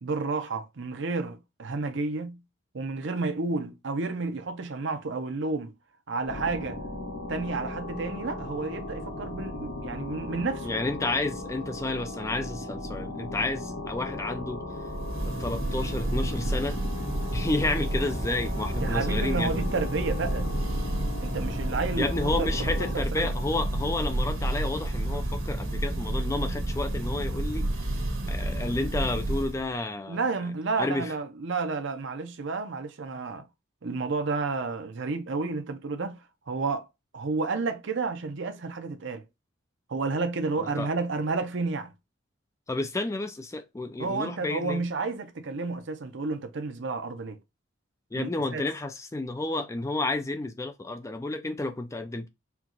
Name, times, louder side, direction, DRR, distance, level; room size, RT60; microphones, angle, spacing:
voice 1, 0.0-2.4 2.7-5.7 6.1-6.8 7.3-10.7 18.8-20.5 21.2-23.3 30.1-33.4 33.8-36.2 36.5-36.9 37.1-39.2 39.9-41.9 44.0-47.4 48.1-48.6, right 3 dB, 65° right, 0.7 m, -31 dB
sound 1, 6.2-23.0, left 2 dB, 85° left, 1.8 m, -37 dB
voice 2, 10.6-14.6 15.2-16.8 17.3-19.7 22.0-30.2 30.8-31.1 40.6-40.9 42.7-44.8 48.1-52.3, left 2 dB, 15° left, 0.3 m, -31 dB
Church bell, 14.8-29.8, right 1 dB, 90° right, 1.6 m, -30 dB
4.6 x 2.4 x 3.8 m
head